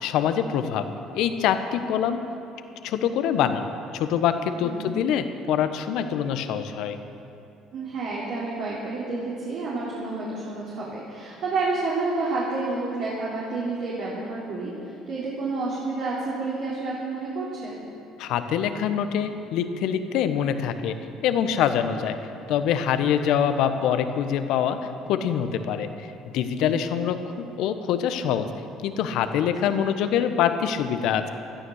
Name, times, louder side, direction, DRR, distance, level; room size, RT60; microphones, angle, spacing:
voice 1, 0.0-0.8 1.1-2.2 2.8-3.7 3.9-7.0 18.2-21.0 21.2-22.2 22.5-24.8 25.1-26.1 26.3-28.5 28.8-31.3, left 8 dB, 65° left, 9 dB, 1.1 m, -24 dB
voice 2, 7.7-17.8 26.6-26.8 29.6-29.7, right 3 dB, 60° right, -7 dB, 3.8 m, -30 dB
16.5 x 13.0 x 6.5 m, 2.8 s
hypercardioid pair, 60°, 0 cm